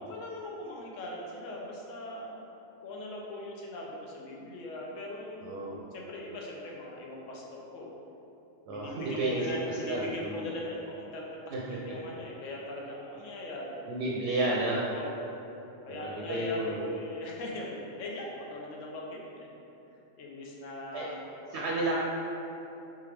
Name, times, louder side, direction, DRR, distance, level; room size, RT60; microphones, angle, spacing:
voice 1, 0.0-2.3 2.8-7.9 8.7-14.0 14.9-15.1 15.8-19.6 20.2-21.2, left 1 dB, 75° left, -2 dB, 1.0 m, -40 dB
voice 2, 5.4-5.8 8.7-9.4 9.9-10.4 11.5-11.8 13.9-14.8 15.9-16.9 20.9-21.1 21.5-22.0, right 2 dB, 70° right, -4 dB, 0.8 m, -31 dB
3.5 x 3.4 x 3.3 m, 2.9 s
omnidirectional pair, 1.4 m